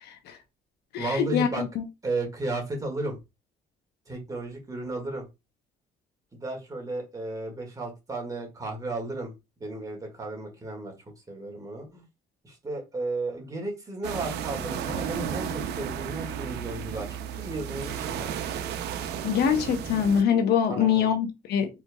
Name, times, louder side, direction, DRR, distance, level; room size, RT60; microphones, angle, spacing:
voice 1, 0.0-0.4 0.9-1.8 19.2-21.7, left 8 dB, 75° left, 0.9 m, -24 dB
voice 2, 1.0-1.6 2.0-3.2 4.1-5.2 6.4-9.3 9.6-10.9 11.3-12.0 12.4-18.3 20.7-21.1, right 2 dB, 20° right, 1.9 m, -34 dB
sound 1, 14.0-20.2, right 8 dB, 75° right, 0.6 m, -33 dB
4.4 x 4.3 x 2.3 m
cardioid pair, 110°, 17 cm